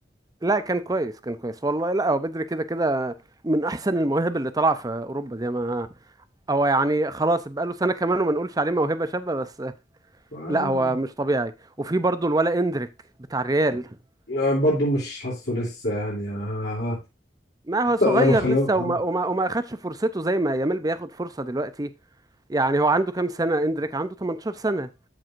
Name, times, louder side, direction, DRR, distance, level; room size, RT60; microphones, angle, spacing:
voice 1, 0.4-3.1 3.4-5.9 6.5-9.7 10.5-11.5 11.8-12.9 13.3-13.9 17.7-21.9 22.5-24.9, right 2 dB, 20° right, 0.6 m, -24 dB
voice 2, 10.3-10.9 14.3-17.0 18.0-19.0, left 1 dB, 65° left, 3.3 m, -24 dB
13.5 x 4.8 x 2.6 m
head